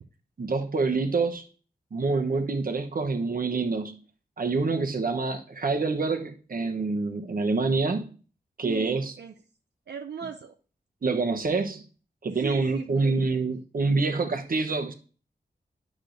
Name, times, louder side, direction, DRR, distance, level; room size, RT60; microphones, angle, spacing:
voice 1, 0.4-1.5 1.9-4.0 4.4-8.1 8.6-9.1 11.0-11.8 12.2-14.9, right 3 dB, 55° right, 0.9 m, -26 dB
voice 2, 8.6-9.4 9.9-10.6 12.3-13.2, right 7 dB, 80° right, 0.5 m, -38 dB
10.0 x 6.2 x 2.6 m
wide cardioid pair, 75°, 17 cm